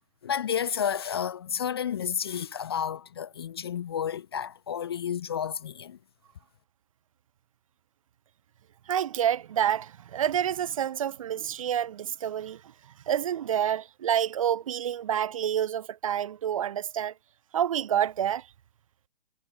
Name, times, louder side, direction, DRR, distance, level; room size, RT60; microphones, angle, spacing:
voice 1, 0.2-6.0, left 8 dB, 25° left, 0.5 m, -31 dB
voice 2, 8.9-12.6 13.1-17.1 17.5-18.5, right 10 dB, 35° right, 0.6 m, -28 dB
figure-of-eight pair, 130°, 29 cm